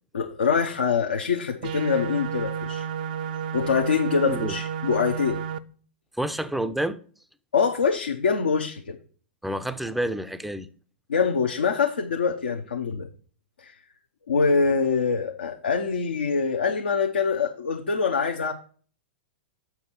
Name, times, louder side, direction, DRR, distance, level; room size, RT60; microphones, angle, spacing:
voice 1, 0.1-2.9 3.5-5.4 7.5-9.0 11.1-13.1 13.6-13.7 14.3-18.5, left 5 dB, 70° left, 3 dB, 0.8 m, -24 dB
sound 1, 1.6-5.6, right 8 dB, 50° right, 0.5 m, -31 dB
voice 2, 4.2-4.6 6.2-7.0 9.4-10.7, right 1 dB, ahead, 13 dB, 0.5 m, -28 dB
7.1 x 5.9 x 4.4 m, 0.43 s
figure-of-eight pair, 100°, 6 cm